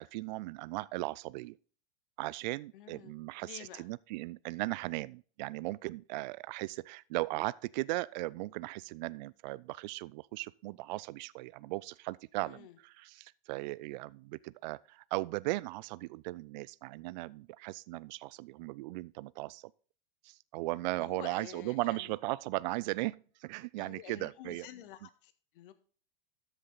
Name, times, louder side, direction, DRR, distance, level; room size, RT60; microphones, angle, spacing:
voice 1, 0.0-1.6 2.2-19.7 20.2-24.7, right 20 dB, 50° right, 0.4 m, -37 dB
voice 2, 2.7-3.1 3.4-3.8 12.4-12.8 21.0-22.1 23.8-25.7, left 12 dB, 60° left, 1.5 m, -50 dB
13.5 x 6.6 x 3.9 m
hypercardioid pair, 105°, 30 cm